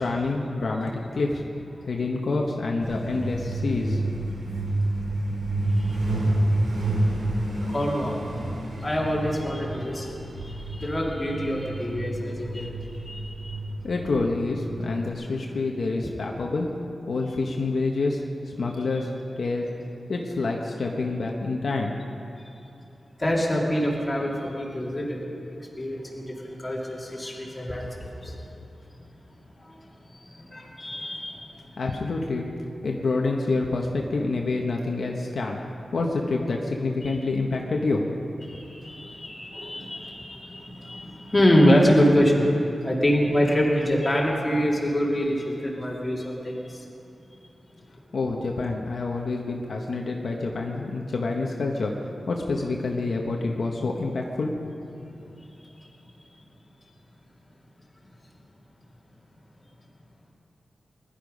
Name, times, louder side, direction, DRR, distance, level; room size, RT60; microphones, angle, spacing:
voice 1, 0.0-1.4 1.8-4.3 13.8-16.7 17.1-19.1 19.4-19.7 20.1-22.0 31.8-32.5 32.8-35.6 35.9-38.0 48.1-54.8, left 3 dB, 60° left, 0 dB, 1.1 m, -27 dB
Truck, 2.8-15.1, right 1 dB, 75° right, 3.2 m, -29 dB
voice 2, 7.7-8.2 8.8-13.6 22.4-22.6 23.2-25.2 25.8-28.3 29.6-31.6 37.0-37.2 38.5-42.5 42.8-46.8 55.6-55.9, equal, 15° left, -4 dB, 2.6 m, -25 dB
21.0 x 12.0 x 5.3 m, 2.7 s
wide cardioid pair, 170°, 0 cm